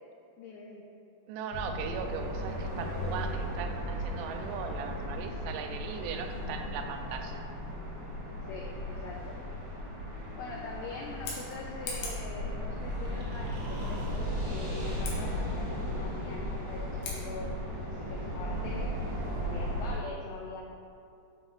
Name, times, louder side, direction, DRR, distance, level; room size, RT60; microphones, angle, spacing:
voice 1, 0.4-0.8 8.5-9.4 10.4-17.6 17.9-18.9 19.3-20.6, left 3 dB, 90° left, -1 dB, 2.4 m, -43 dB
voice 2, 1.3-7.5, right 6 dB, 85° right, 5 dB, 3.0 m, -38 dB
sound 1, 1.5-20.0, equal, 55° left, 2.6 m, -36 dB
Scissors, 11.0-12.3 15.0-15.2 17.0-17.2, left 3 dB, 70° left, 2.3 m, -40 dB
sound 2, 12.8-15.9, right 2 dB, 70° right, 2.6 m, -52 dB
7.8 x 5.4 x 3.0 m, 2.6 s
omnidirectional pair, 5.5 m